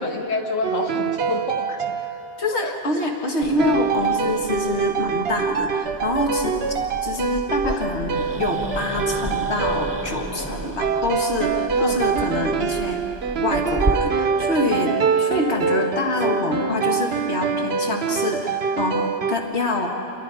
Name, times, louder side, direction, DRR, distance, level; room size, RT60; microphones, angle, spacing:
voice 1, 0.0-1.9 2.5-2.7 7.6-7.8 11.7-12.0, left 3 dB, 80° left, 2 dB, 1.5 m, -28 dB
sound 1, 0.6-2.8 3.6-19.4, right 6 dB, 60° right, 1.0 m, -25 dB
voice 2, 2.4-6.5 7.0-13.0 13.4-19.9, left 2 dB, 60° left, 1 dB, 2.2 m, -26 dB
Growling, 3.4-13.9, right 1 dB, 20° right, 0.9 m, -33 dB
28.5 x 21.5 x 5.0 m, 2.9 s
omnidirectional pair, 1.3 m